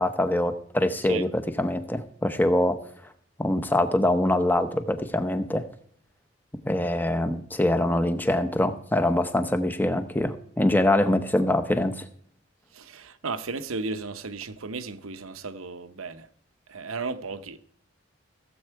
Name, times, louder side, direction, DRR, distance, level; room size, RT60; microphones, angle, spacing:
voice 1, 0.0-2.8 3.4-5.7 6.6-12.1, left 1 dB, 10° left, 0.8 m, -24 dB
voice 2, 12.7-16.3 16.7-17.6, right 4 dB, 90° right, 0.9 m, -34 dB
15.5 x 7.9 x 4.6 m
head